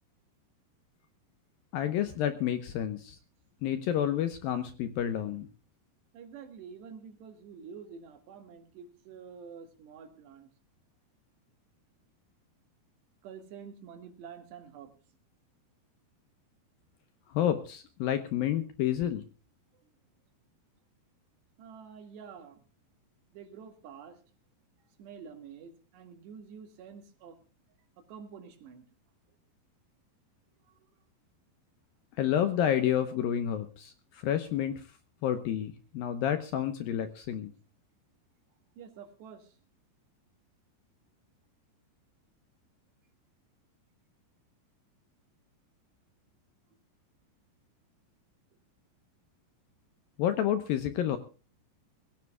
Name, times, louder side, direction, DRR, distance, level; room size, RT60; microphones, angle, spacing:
voice 1, 1.7-3.2 3.6-5.5 17.3-19.2 32.2-34.8 35.2-37.5 50.2-51.2, left 10 dB, 75° left, 10 dB, 2.3 m, -29 dB
voice 2, 6.1-10.5 13.2-14.9 19.7-19.9 21.6-22.6 23.3-24.2 25.0-27.4 28.0-28.9 30.7-30.9 38.8-39.6, right 6 dB, 75° right, 6 dB, 4.1 m, -48 dB
22.5 x 16.0 x 2.3 m, 0.36 s
omnidirectional pair, 5.1 m